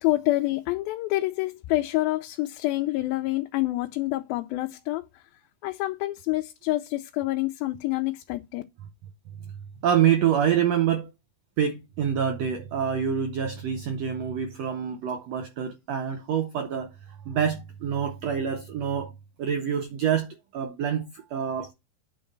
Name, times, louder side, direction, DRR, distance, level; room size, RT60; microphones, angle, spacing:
voice 1, 0.0-5.0 5.6-8.6, left 18 dB, 90° left, 2.5 m, -27 dB
voice 2, 9.8-11.1 11.6-16.9 17.3-19.1 19.4-20.3 20.5-21.7, right 8 dB, 80° right, 1.5 m, -26 dB
8.8 x 3.9 x 6.5 m
omnidirectional pair, 4.1 m